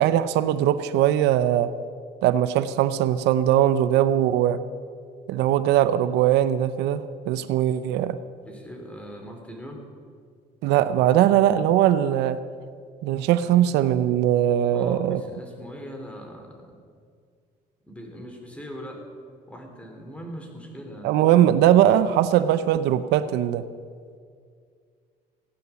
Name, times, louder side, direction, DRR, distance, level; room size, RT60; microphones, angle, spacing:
voice 1, 0.0-1.7 2.2-4.6 5.3-8.2 10.6-12.4 13.0-15.2 21.0-23.6, right 11 dB, 85° right, 13 dB, 0.6 m, -20 dB
voice 2, 8.4-9.8 14.7-16.7 17.9-19.0 19.5-21.1, equal, 5° left, 2 dB, 3.0 m, -40 dB
16.5 x 9.5 x 7.0 m, 2.1 s
cardioid pair, 110°, 17 cm